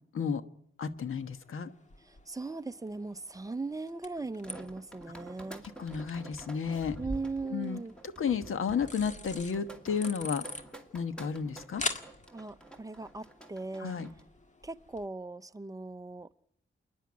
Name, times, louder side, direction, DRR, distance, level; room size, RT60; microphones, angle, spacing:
voice 1, 0.8-1.7 5.8-7.0 7.5-7.8 8.2-10.4 10.9-11.8 13.8-14.1, left 6 dB, 80° left, 11 dB, 1.3 m, -32 dB
sound 1, 1.0-15.1, left 3 dB, 35° left, 1.7 m, -45 dB
voice 2, 2.0-5.7 7.0-7.9 12.3-14.0 14.6-16.3, right 3 dB, 15° right, 11 dB, 0.7 m, -39 dB
sound 2, 4.2-14.2, right 2 dB, 5° left, 2.4 m, -47 dB
28.0 x 10.5 x 9.6 m, 0.73 s
wide cardioid pair, 105°, 21 cm